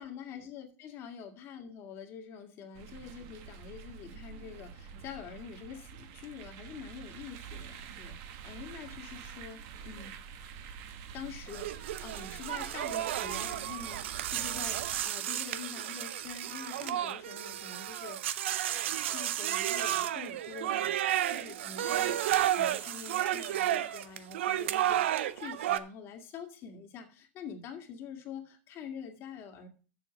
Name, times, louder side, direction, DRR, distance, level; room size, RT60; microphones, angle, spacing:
voice 1, 0.0-10.1 11.1-18.2 19.1-20.9 21.3-25.1 25.3-29.7, left 7 dB, 40° left, 4 dB, 2.0 m, -46 dB
sound 1, 2.7-15.0, right 7 dB, 50° right, 1.3 m, -47 dB
sound 2, 11.5-25.8, right 12 dB, 85° right, 0.6 m, -32 dB
7.3 x 7.0 x 5.9 m, 0.37 s
supercardioid pair, 135°, 6 cm